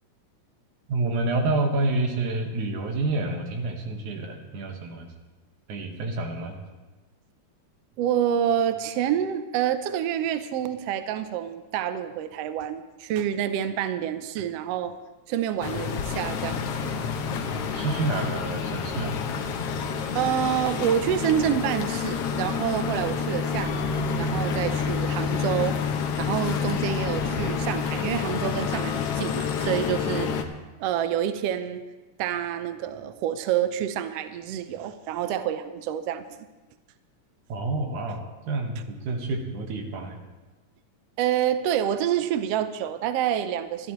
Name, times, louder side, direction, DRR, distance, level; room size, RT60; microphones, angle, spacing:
voice 1, 0.9-5.1 5.7-6.6 17.5-19.2 37.5-40.2, right 2 dB, 90° right, 3 dB, 3.0 m, -28 dB
voice 2, 8.0-15.0 15.3-16.9 20.1-25.8 26.2-30.3 30.8-31.8 32.2-36.2 41.2-43.9, right 10 dB, 70° right, 10 dB, 1.6 m, -27 dB
Bangkok Peninsula Pier Passing Boats Construction Noise, 15.6-30.4, left 6 dB, 65° left, 1.7 m, -28 dB
25.0 x 12.0 x 3.1 m, 1.2 s
omnidirectional pair, 3.4 m